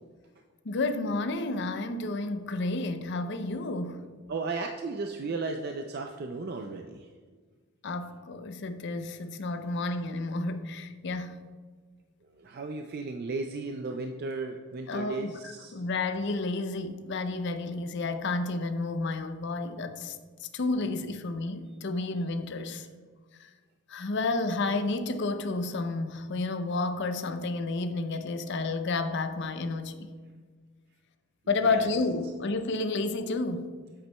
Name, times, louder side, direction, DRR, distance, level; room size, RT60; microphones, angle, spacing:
voice 1, 0.6-4.0 7.8-11.3 14.9-22.9 23.4-23.5 23.9-30.1 31.5-33.7, left 3 dB, 55° left, 9 dB, 0.5 m, -31 dB
voice 2, 4.3-7.1 12.4-15.7 31.6-31.9, right 3 dB, 45° right, 4 dB, 0.4 m, -35 dB
8.9 x 8.0 x 2.2 m, 1.5 s
head